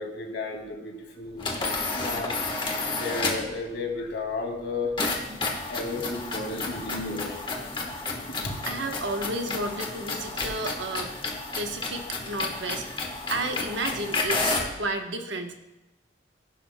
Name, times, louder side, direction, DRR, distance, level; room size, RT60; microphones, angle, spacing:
voice 1, 0.0-2.4 2.9-4.9 5.7-7.8 8.3-8.6, left 3 dB, 70° left, 1 dB, 2.3 m, -33 dB
sound 1, 1.4-3.6 5.0-14.8, left 3 dB, 25° left, 1.3 m, -31 dB
voice 2, 1.8-2.2 5.3-5.4 7.9-8.0 8.7-11.1 11.6-15.5, right 2 dB, 75° right, 4 dB, 1.1 m, -32 dB
15.5 x 11.0 x 2.2 m, 0.99 s
head